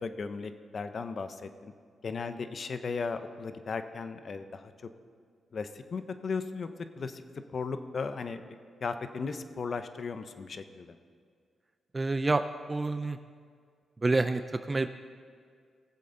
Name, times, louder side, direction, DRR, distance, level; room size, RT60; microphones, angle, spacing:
voice 1, 0.0-1.7 2.0-4.7 5.5-6.7 7.0-7.2 7.5-8.5 8.8-11.0, left 4 dB, 55° left, 10 dB, 0.7 m, -36 dB
voice 2, 11.9-13.2 14.0-14.9, right 3 dB, 30° right, 10 dB, 0.4 m, -28 dB
18.5 x 7.7 x 3.9 m, 2.1 s
cardioid pair, 70°, 0 cm